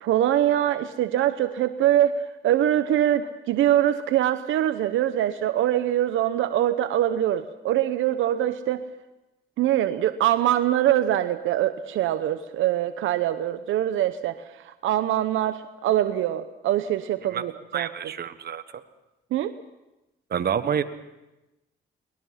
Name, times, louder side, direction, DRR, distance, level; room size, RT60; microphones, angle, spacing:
voice 1, 0.0-8.9 9.6-17.9 19.3-19.5, right 12 dB, 80° right, 10 dB, 0.9 m, -23 dB
voice 2, 17.7-18.6 20.3-20.8, right 8 dB, 50° right, 11 dB, 1.3 m, -27 dB
22.5 x 20.0 x 5.8 m, 1.0 s
cardioid pair, 90°, 20 cm